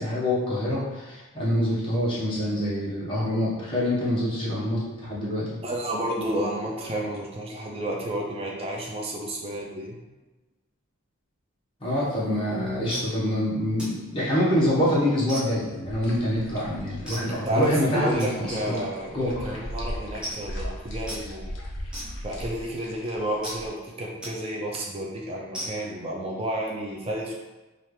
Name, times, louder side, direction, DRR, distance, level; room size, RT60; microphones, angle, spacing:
voice 1, 0.0-5.6 11.8-18.9 19.1-19.6, left 1 dB, 25° left, -8 dB, 1.2 m, -26 dB
voice 2, 5.6-10.0 17.4-21.5 22.2-27.3, right 1 dB, 30° right, -2 dB, 0.4 m, -31 dB
sound 1, 12.3-12.5 12.9-13.1 13.8-14.0 14.5-14.8 15.3-15.8 17.1-17.3 18.2-18.3 19.0-19.2 19.4-19.5 19.8-19.9 20.2-20.6 21.1-21.2 21.9-22.5 23.4-23.6 24.2-24.4 24.7-24.9 25.5-25.9, right 1 dB, 5° right, 0.8 m, -37 dB
sound 2, 15.8-23.7, equal, 60° left, 0.8 m, -38 dB
4.3 x 2.5 x 3.2 m, 1.1 s
head